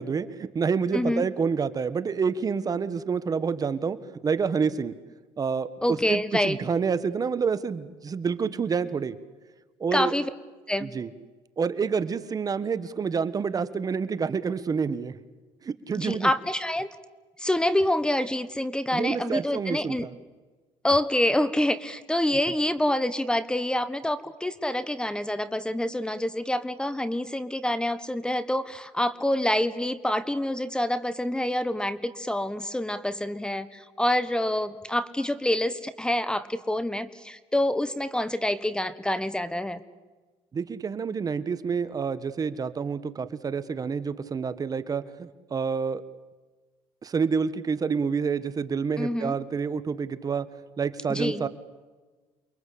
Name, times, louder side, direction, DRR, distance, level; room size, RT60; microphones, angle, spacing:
voice 1, 0.0-4.0 4.2-4.9 5.4-5.7 6.1-9.2 9.8-10.1 10.8-11.1 11.6-15.1 15.6-16.3 18.9-20.1 40.5-46.0 47.0-50.5 50.8-51.5, right 5 dB, 30° right, 13 dB, 1.4 m, -28 dB
voice 2, 0.9-1.2 5.8-6.6 9.9-10.3 10.7-10.9 16.0-16.9 17.4-20.1 20.8-39.8 49.0-49.4 51.1-51.5, left 1 dB, 5° left, 15 dB, 1.3 m, -27 dB
29.0 x 23.0 x 8.6 m, 1.3 s
cardioid pair, 100°, 11 cm